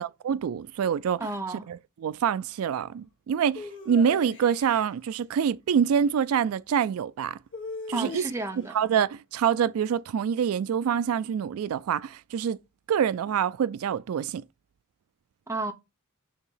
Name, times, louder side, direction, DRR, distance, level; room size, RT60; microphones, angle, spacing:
voice 1, 0.0-1.3 1.7-7.4 7.9-8.3 8.7-12.6 12.9-14.4, right 8 dB, 75° right, 0.3 m, -26 dB
voice 2, 1.2-1.7 7.9-8.8 15.5-15.7, right 2 dB, 15° right, 0.9 m, -32 dB
sound 1, 3.5-4.9 7.5-8.7, left 3 dB, 60° left, 1.8 m, -39 dB
6.6 x 2.9 x 5.6 m
head